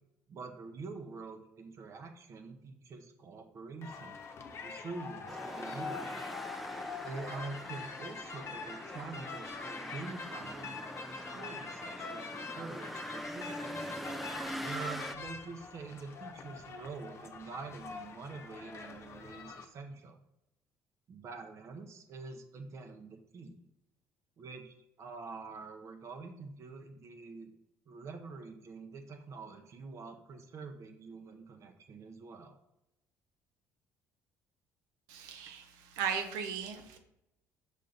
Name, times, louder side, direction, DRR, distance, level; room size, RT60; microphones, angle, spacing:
voice 1, 0.3-4.2 4.6-6.2 7.0-10.8 11.3-14.1 14.6-20.2 21.1-23.6 24.4-27.5 27.9-32.6, right 4 dB, 50° right, 5 dB, 0.9 m, -46 dB
sound 1, 3.8-19.7, left 5 dB, 45° left, 0.9 m, -44 dB
sound 2, 5.3-15.2, equal, ahead, 0.4 m, -43 dB
voice 2, 35.1-37.0, right 7 dB, 90° right, 5 dB, 1.0 m, -37 dB
5.5 x 5.1 x 4.0 m, 0.85 s
cardioid pair, 100°, 6 cm